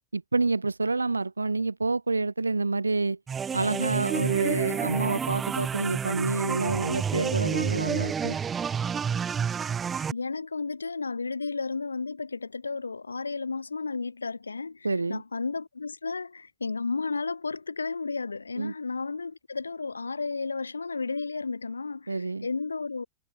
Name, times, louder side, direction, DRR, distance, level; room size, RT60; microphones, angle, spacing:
voice 1, 0.1-3.2 3.5-8.4 14.8-15.2 18.6-18.7 22.1-22.5, right 3 dB, 80° right, 0.4 m, -28 dB
sound 1, 3.3-10.1, right 7 dB, 20° right, 1.3 m, -29 dB
voice 2, 10.1-23.1, left 4 dB, 80° left, 2.5 m, -33 dB
figure-of-eight pair, 90°, 0 cm